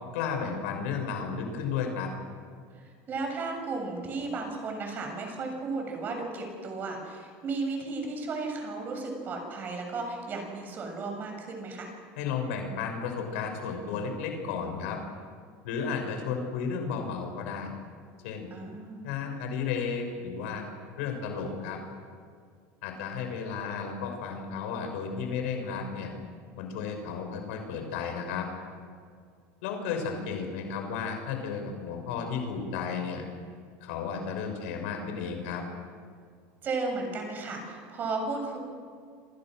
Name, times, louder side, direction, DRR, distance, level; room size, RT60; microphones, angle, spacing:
voice 1, 0.1-2.1 12.2-15.0 15.6-17.7 18.2-18.5 19.0-20.6 21.0-21.8 22.8-26.1 26.5-28.5 29.6-33.2 33.8-35.6, left 6 dB, 75° left, 4 dB, 6.2 m, -33 dB
voice 2, 2.8-11.9 15.9-16.1 18.5-19.1 36.6-38.6, right 3 dB, 25° right, 2 dB, 7.2 m, -34 dB
28.5 x 28.0 x 6.4 m, 2.1 s
cardioid pair, 170°, 7 cm